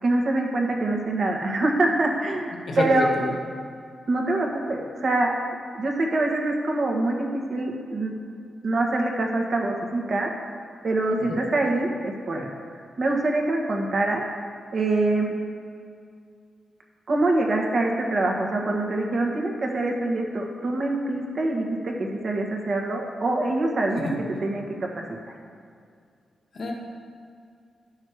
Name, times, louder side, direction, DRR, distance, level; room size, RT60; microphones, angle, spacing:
voice 1, 0.0-3.1 4.1-5.3 5.7-8.1 8.6-10.3 10.8-12.5 13.0-14.2 14.7-15.3 17.1-24.1 24.4-25.0, right 2 dB, 50° right, 1 dB, 1.5 m, -25 dB
voice 2, 2.5-3.3 11.3-11.4 23.9-24.2 26.5-26.7, left 2 dB, 60° left, 1 dB, 1.5 m, -29 dB
11.0 x 6.4 x 4.9 m, 2.3 s
cardioid pair, 100°, 0 cm